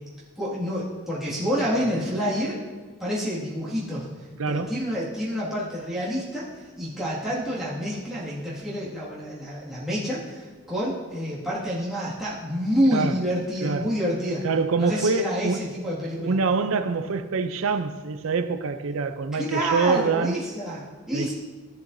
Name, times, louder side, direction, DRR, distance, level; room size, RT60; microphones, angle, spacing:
voice 1, 0.4-2.6 3.0-4.1 4.5-14.4 14.8-16.4 19.3-21.3, equal, ahead, 2.0 m, -28 dB
voice 2, 4.4-4.8 12.9-13.2 13.6-13.9 14.4-15.7 16.2-20.4 21.1-21.3, right 4 dB, 70° right, 0.5 m, -25 dB
15.0 x 7.0 x 2.7 m
head